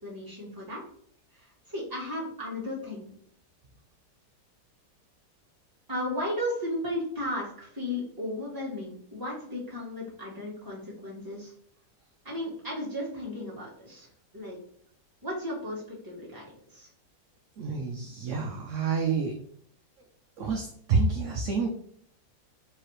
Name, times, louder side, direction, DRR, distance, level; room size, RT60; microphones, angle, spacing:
voice 1, 0.0-0.8 1.3-3.1 5.9-11.5 12.2-14.1 14.3-14.6 15.2-16.9, left 1 dB, 15° right, -6 dB, 1.5 m, -35 dB
voice 2, 17.6-19.3 20.4-21.7, right 4 dB, 65° right, 2 dB, 0.7 m, -28 dB
4.7 x 3.4 x 3.1 m, 0.64 s
omnidirectional pair, 1.8 m